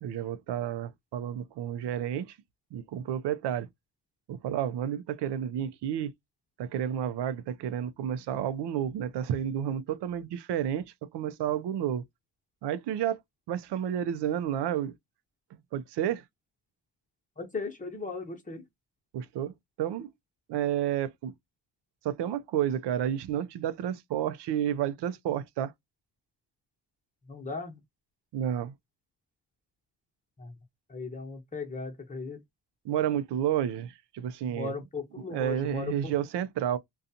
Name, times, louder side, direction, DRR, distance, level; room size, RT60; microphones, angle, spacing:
voice 1, 0.0-2.4 2.7-3.7 4.3-6.1 6.6-12.0 12.6-13.2 13.5-14.9 15.7-16.2 19.1-20.1 20.5-21.3 22.0-25.7 28.3-28.7 32.8-34.8 35.3-36.8, right 10 dB, 75° right, 0.5 m, -31 dB
voice 2, 17.4-18.6 27.3-27.8 30.4-30.5 30.9-32.4 34.4-36.1, left 4 dB, 20° left, 1.0 m, -37 dB
2.5 x 2.3 x 2.7 m
cardioid pair, 85°, 41 cm